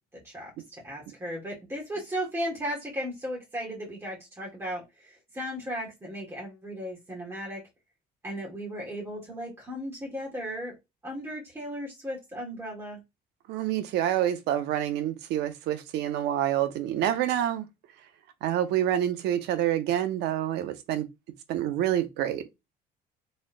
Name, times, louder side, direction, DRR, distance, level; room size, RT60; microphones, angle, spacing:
voice 1, 0.1-0.5 0.8-7.6 8.2-10.7 11.0-13.0, equal, 15° right, 1.8 m, -36 dB
voice 2, 13.5-17.7 18.4-21.1 21.5-22.4, right 11 dB, 80° right, 0.7 m, -27 dB
4.2 x 3.7 x 2.3 m
cardioid pair, 110°, 17 cm